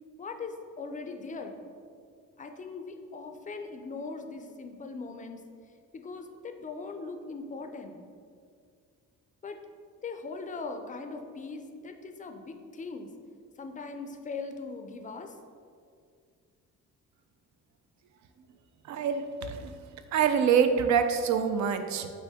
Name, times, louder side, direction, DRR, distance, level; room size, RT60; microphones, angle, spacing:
voice 1, 0.2-1.6 2.4-5.4 5.9-8.0 9.4-9.6 10.0-13.1 13.6-15.3, left 4 dB, 25° left, 6 dB, 0.4 m, -40 dB
voice 2, 18.8-19.8 20.1-22.1, right 7 dB, 70° right, 8 dB, 0.5 m, -25 dB
5.5 x 2.6 x 3.5 m, 2.2 s
cardioid pair, 90°, 30 cm